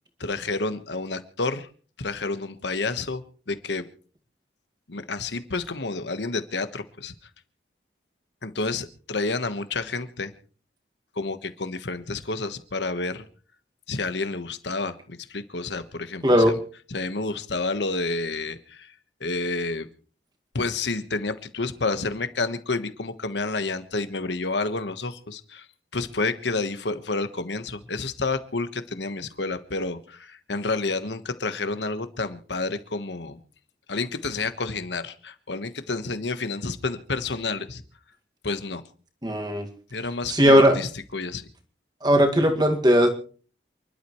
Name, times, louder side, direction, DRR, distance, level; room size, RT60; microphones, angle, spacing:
voice 1, 0.2-1.7 2.0-3.9 4.9-7.1 8.4-10.3 11.1-13.2 13.9-16.6 16.9-18.9 19.2-19.9 20.5-25.7 25.9-33.4 33.9-37.8 38.4-38.8 39.9-41.5, left 3 dB, 85° left, 10 dB, 1.3 m, -29 dB
voice 2, 16.2-16.5 39.2-39.7 40.3-40.8 42.0-43.1, equal, 25° right, 4 dB, 2.0 m, -18 dB
28.5 x 12.0 x 3.2 m, 0.41 s
head